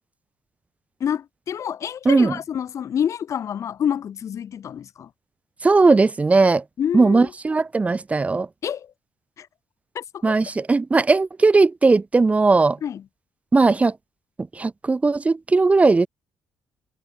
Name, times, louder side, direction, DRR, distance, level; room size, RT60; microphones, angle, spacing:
voice 1, 1.0-5.1 6.8-7.3 8.6-8.9 9.4-9.5 9.9-10.4 12.8-13.0, left 9 dB, 50° left, 3.1 m, -28 dB
voice 2, 5.6-6.6 6.9-8.5 10.2-12.8 13.5-13.9 14.5-16.1, right 3 dB, 20° right, 2.6 m, -18 dB
cardioid pair, 115°, 6 cm